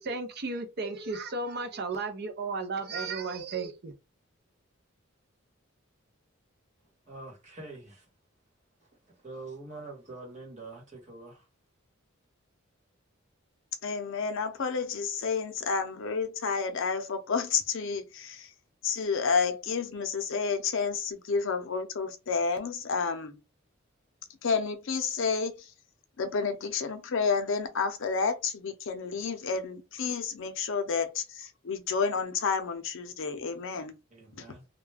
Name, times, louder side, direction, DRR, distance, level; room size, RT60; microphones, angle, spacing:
voice 1, 0.0-3.9, right 3 dB, 50° right, 0.6 m, -34 dB
voice 2, 7.1-8.1 8.8-8.9 9.1-11.5 34.1-34.7, right 2 dB, 35° right, 1.2 m, -45 dB
voice 3, 13.8-18.5 18.8-23.4 24.4-25.7 26.2-34.0 34.4-34.5, left 5 dB, 65° left, 0.6 m, -30 dB
2.3 x 2.2 x 3.3 m
head